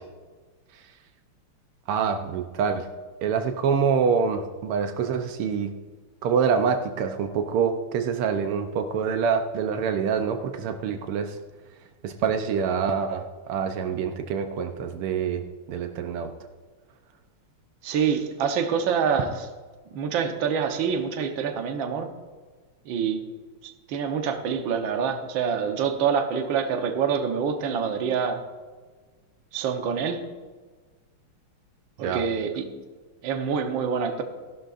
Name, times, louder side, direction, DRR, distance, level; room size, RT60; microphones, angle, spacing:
voice 1, 1.9-2.9 3.2-5.7 6.2-11.4 12.0-16.3 32.0-32.2, right 6 dB, 85° right, 6 dB, 1.7 m, -26 dB
voice 2, 17.8-19.5 19.9-22.1 22.8-23.3 23.6-28.4 29.5-30.2 32.0-32.7 33.2-34.2, right 6 dB, 65° right, 5 dB, 1.7 m, -26 dB
15.5 x 11.5 x 2.5 m, 1.4 s
omnidirectional pair, 2.4 m